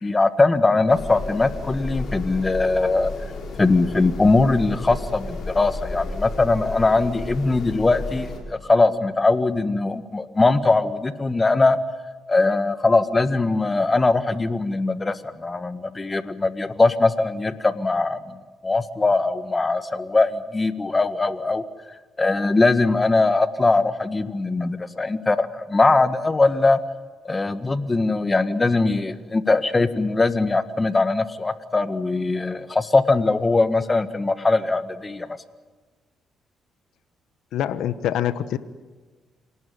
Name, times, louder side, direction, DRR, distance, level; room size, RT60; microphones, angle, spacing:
voice 1, 0.0-3.1 3.6-11.8 12.3-18.4 18.6-21.6 22.2-26.8 27.2-35.3, left 3 dB, 25° left, 11 dB, 1.6 m, -21 dB
sound 1, 0.9-8.4, left 2 dB, 55° left, 6.4 m, -33 dB
voice 2, 37.5-38.6, left 11 dB, 80° left, 13 dB, 1.1 m, -25 dB
27.0 x 18.5 x 9.5 m, 1.3 s
cardioid pair, 90°, 0 cm